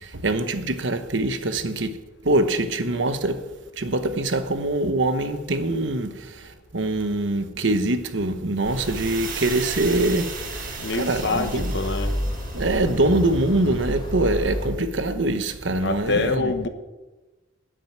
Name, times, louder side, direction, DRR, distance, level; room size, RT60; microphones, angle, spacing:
voice 1, 0.0-2.0 2.2-3.5 3.8-11.7 12.5-16.5, right 2 dB, 65° right, 1.0 m, -24 dB
sound 1, 8.6-14.7, equal, 25° left, 3.4 m, -31 dB
sound 2, 8.6-13.6, right 5 dB, 45° right, 1.7 m, -37 dB
voice 2, 10.8-12.1 15.8-16.7, left 3 dB, 60° left, 1.1 m, -25 dB
12.0 x 6.4 x 9.2 m
head